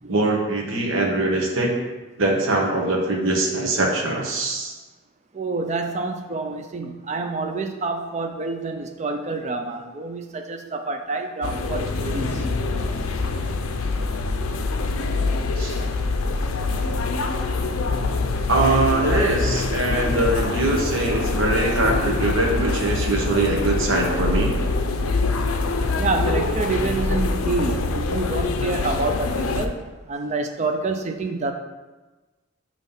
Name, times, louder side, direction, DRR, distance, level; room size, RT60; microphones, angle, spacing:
voice 1, 0.1-1.7 2.2-4.7 15.6-15.8 18.5-24.6, right 2 dB, 65° right, 0 dB, 1.1 m, -22 dB
voice 2, 5.3-12.5 26.0-29.8 30.1-31.5, right 3 dB, 30° right, 5 dB, 0.5 m, -27 dB
sound 1, 11.4-29.7, left 3 dB, 80° left, 0.5 m, -24 dB
5.5 x 3.1 x 5.5 m, 1.2 s
head